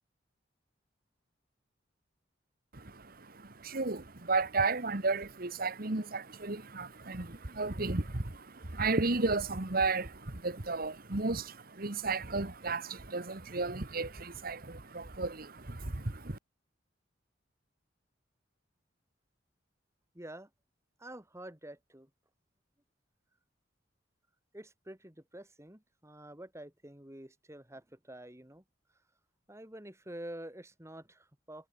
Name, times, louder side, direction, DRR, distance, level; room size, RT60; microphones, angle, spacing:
voice 1, 2.7-16.4, right 3 dB, 50° right, 1.7 m, -33 dB
voice 2, 20.1-20.5 21.0-22.1 24.5-29.0 29.5-31.7, right 1 dB, 15° right, 3.9 m, -48 dB
head